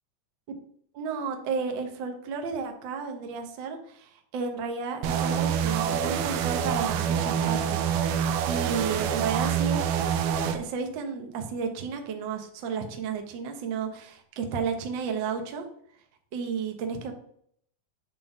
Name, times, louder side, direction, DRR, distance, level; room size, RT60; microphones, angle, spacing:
voice 1, 0.9-9.8 10.5-15.6 16.3-17.1, right 5 dB, 65° right, 5 dB, 1.1 m, -32 dB
sound 1, 5.0-10.6, right 8 dB, 85° right, 2.3 m, -26 dB
7.6 x 3.7 x 5.8 m, 0.65 s
omnidirectional pair, 3.7 m